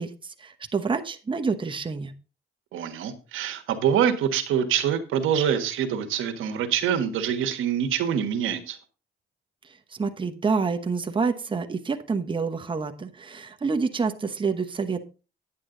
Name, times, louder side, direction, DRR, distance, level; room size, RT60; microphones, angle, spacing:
voice 1, 0.0-2.1 9.9-15.0, right 4 dB, 25° right, 6 dB, 1.1 m, -28 dB
voice 2, 2.7-8.8, right 8 dB, 85° right, 7 dB, 1.4 m, -25 dB
9.6 x 8.5 x 3.8 m, 0.32 s
cardioid pair, 90°, 20 cm